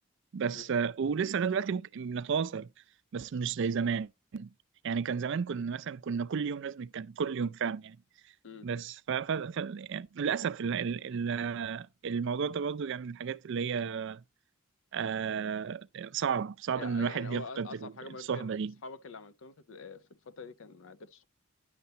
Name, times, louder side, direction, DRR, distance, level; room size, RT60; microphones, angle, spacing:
voice 1, 0.3-2.7 3.1-4.5 4.8-8.0 8.6-14.2 14.9-17.9 18.3-18.7, right 6 dB, 60° right, 0.4 m, -32 dB
voice 2, 16.7-18.6 18.8-21.2, left 4 dB, 65° left, 0.6 m, -45 dB
10.0 x 6.7 x 2.8 m
head